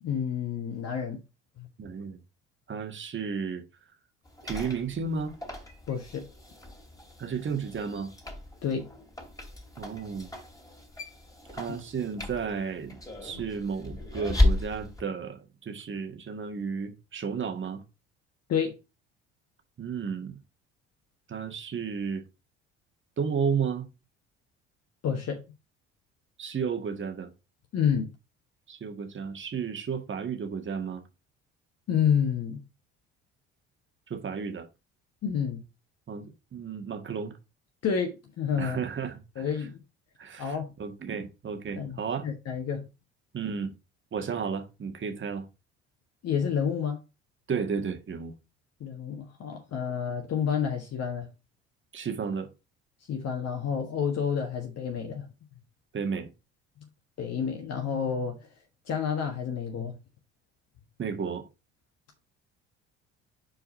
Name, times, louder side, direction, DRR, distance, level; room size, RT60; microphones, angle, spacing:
voice 1, 0.0-1.2 1.6-1.7 5.9-6.3 8.6-8.9 18.5-18.8 25.0-25.4 27.7-28.1 31.9-32.6 35.2-35.6 37.8-38.8 39.3-39.8 40.4-40.7 41.8-42.9 46.2-47.0 48.8-51.3 53.1-55.3 57.2-58.4 58.9-60.0, left 7 dB, 50° left, 1.4 m, -29 dB
voice 2, 1.8-2.2 2.7-3.6 4.4-5.3 7.2-8.1 9.8-10.3 11.5-17.8 19.8-20.4 21.3-22.2 23.2-23.9 26.4-27.3 28.7-31.0 34.1-34.7 36.1-37.3 38.6-39.4 40.2-42.3 43.3-43.7 44.1-45.5 47.5-48.3 51.9-52.5 55.9-56.3 61.0-61.5, right 6 dB, 35° right, 1.8 m, -33 dB
sound 1, 4.3-15.0, left 1 dB, 10° left, 2.7 m, -34 dB
5.3 x 4.8 x 5.3 m
hypercardioid pair, 60°, 33 cm